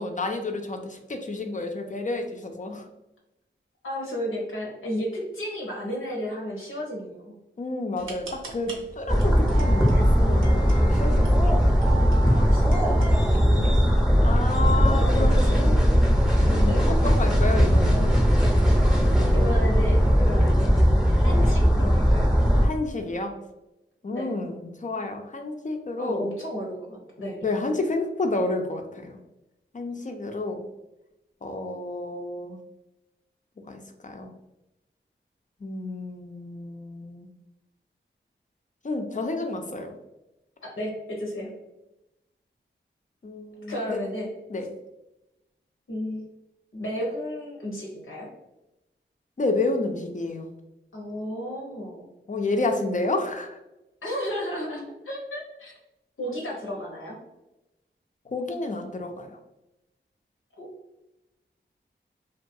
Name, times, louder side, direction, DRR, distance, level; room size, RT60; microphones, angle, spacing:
voice 1, 0.0-2.9 7.6-11.8 14.2-15.9 16.5-18.2 22.6-23.4 24.0-26.3 27.4-29.2 29.7-30.7 31.4-32.6 33.7-34.3 35.6-37.3 38.8-39.9 43.2-44.0 44.5-44.7 49.4-50.5 52.3-53.6 58.3-59.4, left 2 dB, 40° left, 4 dB, 0.4 m, -30 dB
voice 2, 3.8-7.4 12.2-13.7 14.8-15.7 16.6-16.9 19.3-20.8 21.2-22.3 24.1-24.3 26.0-27.4 40.6-41.5 43.7-44.3 45.9-46.2 46.7-48.3 50.9-52.0 54.0-55.7 56.2-57.2 60.6-60.7, equal, 85° left, -2 dB, 0.8 m, -33 dB
sound 1, 8.0-13.3, right 3 dB, 85° right, 0.6 m, -39 dB
sound 2, 9.1-22.7, equal, 5° right, 0.6 m, -19 dB
2.3 x 2.3 x 2.6 m, 0.96 s
cardioid pair, 40°, 20 cm